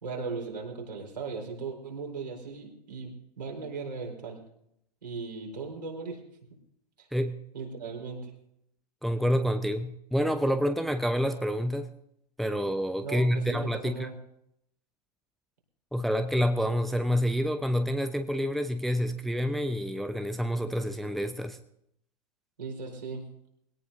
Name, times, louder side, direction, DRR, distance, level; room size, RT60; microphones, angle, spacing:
voice 1, 0.0-4.4 5.0-6.2 7.0-7.1 7.5-8.3 13.0-14.1 22.6-23.2, right 4 dB, 75° right, 0 dB, 4.1 m, -37 dB
voice 2, 9.0-11.9 12.4-14.1 15.9-21.6, equal, ahead, 8 dB, 0.7 m, -28 dB
22.0 x 17.0 x 2.6 m, 0.75 s
figure-of-eight pair, 90°, 21 cm